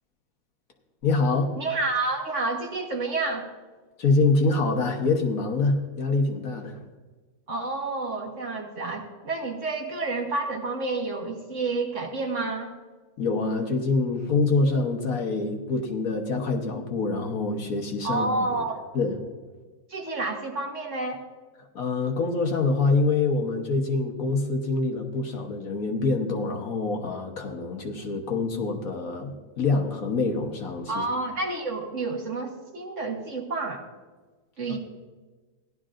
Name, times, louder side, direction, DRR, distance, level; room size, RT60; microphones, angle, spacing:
voice 1, 1.0-1.5 4.0-6.8 13.2-18.6 18.9-19.2 21.7-31.0 34.7-34.8, left 3 dB, 60° left, 3 dB, 1.3 m, -25 dB
voice 2, 1.6-3.5 7.5-12.7 18.0-18.8 19.9-21.2 30.9-33.8 34.6-34.8, right 3 dB, 45° right, 1 dB, 1.4 m, -29 dB
16.5 x 11.5 x 2.5 m, 1.3 s
omnidirectional pair, 1.9 m